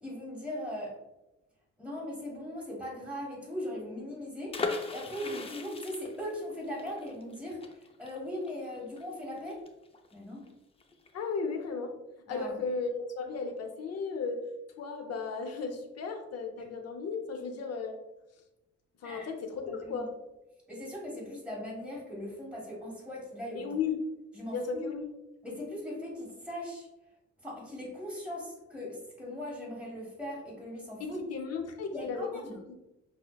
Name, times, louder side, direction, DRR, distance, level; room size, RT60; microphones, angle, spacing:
voice 1, 0.0-0.9 1.8-9.6 10.1-10.4 12.3-12.6 19.0-19.3 19.6-20.0 20.7-23.7 24.3-24.8 25.4-26.9 27.4-31.2 31.9-32.5, left 1 dB, 5° right, -4 dB, 1.5 m, -39 dB
sound 1, 4.5-10.1 10.4-10.5 10.8-11.1, left 3 dB, 20° left, 0.4 m, -38 dB
voice 2, 11.1-11.9 12.3-14.4 14.8-18.0 19.0-20.1 23.5-24.0 24.5-25.1 31.0-32.9, left 5 dB, 55° left, 5 dB, 0.6 m, -35 dB
5.4 x 2.1 x 2.3 m, 0.96 s
cardioid pair, 90°, 30 cm